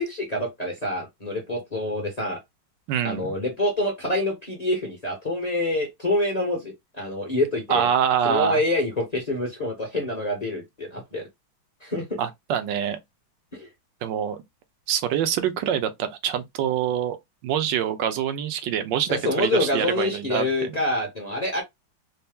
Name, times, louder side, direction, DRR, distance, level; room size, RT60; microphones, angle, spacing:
voice 1, 0.0-2.4 3.0-7.9 8.2-11.3 11.8-12.2 13.5-13.7 19.1-21.6, left 1 dB, 30° left, 0.7 m, -26 dB
voice 2, 2.9-3.3 7.7-8.6 12.2-13.0 14.0-14.4 14.9-17.2 17.4-20.7, right 9 dB, 75° right, 1.2 m, -25 dB
4.3 x 2.1 x 3.4 m
omnidirectional pair, 2.2 m